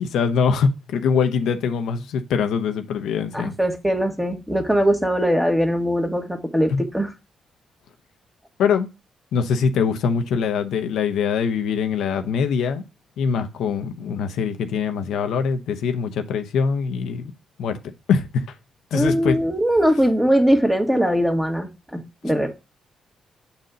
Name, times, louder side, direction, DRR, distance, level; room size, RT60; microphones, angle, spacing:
voice 1, 0.0-3.5 6.7-6.8 8.6-8.9 9.3-12.8 13.2-17.3 17.6-17.8 18.1-18.5 18.9-19.4, left 6 dB, 85° left, 0.8 m, -23 dB
voice 2, 3.3-7.1 18.9-22.6, equal, 5° right, 1.7 m, -21 dB
8.0 x 4.2 x 3.8 m
cardioid pair, 90°, 0 cm